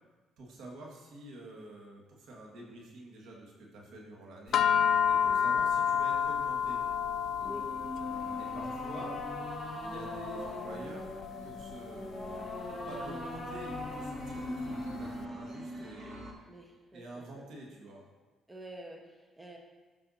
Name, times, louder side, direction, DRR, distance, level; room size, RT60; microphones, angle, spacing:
voice 1, 0.4-4.6 5.1-6.8 8.1-9.2 9.8-11.1 11.4-16.2 16.9-18.0, right 1 dB, 75° right, -1 dB, 1.7 m, -48 dB
sound 1, 4.5-15.0, left 8 dB, 60° left, 0.3 m, -32 dB
sound 2, 7.4-15.4, left 1 dB, 10° left, 2.6 m, -40 dB
sound 3, 9.6-16.3, right 1 dB, 35° right, 1.8 m, -47 dB
voice 2, 16.5-17.5 18.5-19.6, equal, 15° right, 1 dB, 1.1 m, -48 dB
13.0 x 5.8 x 2.7 m, 1.3 s
cardioid pair, 90°, 0 cm